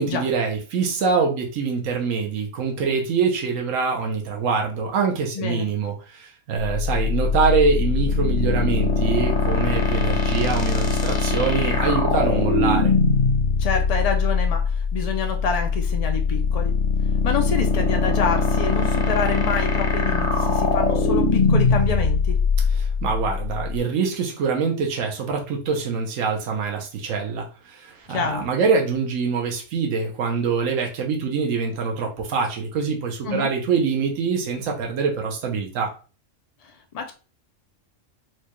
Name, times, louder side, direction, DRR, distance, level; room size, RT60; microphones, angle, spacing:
voice 1, 0.0-12.9 22.7-35.9, right 5 dB, 85° right, 1 dB, 1.1 m, -24 dB
sound 1, 6.7-23.8, left 4 dB, 45° left, 0.7 m, -21 dB
voice 2, 13.6-14.6 14.9-16.7 17.2-22.4 28.1-28.4 33.3-33.5 36.9-37.1, left 5 dB, 75° left, 4 dB, 0.3 m, -27 dB
4.5 x 2.2 x 2.9 m, 0.35 s
omnidirectional pair, 1.3 m